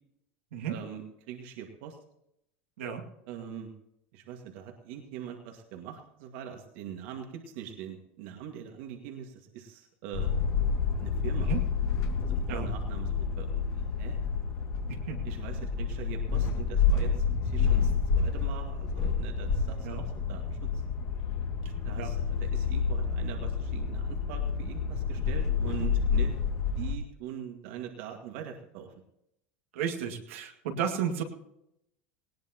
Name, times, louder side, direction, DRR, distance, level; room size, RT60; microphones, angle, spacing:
voice 1, 0.7-2.0 3.3-3.7 4.1-10.3 11.0-11.5 12.2-14.2 15.2-20.8 21.8-26.4 26.8-28.9, right 9 dB, 70° right, 3 dB, 1.9 m, -43 dB
sound 1, 10.1-26.9, left 5 dB, 55° left, 2.2 m, -29 dB
voice 2, 29.7-31.2, right 8 dB, 85° right, 2 dB, 2.1 m, -33 dB
19.0 x 17.5 x 3.0 m, 0.80 s
supercardioid pair, 115°, 7 cm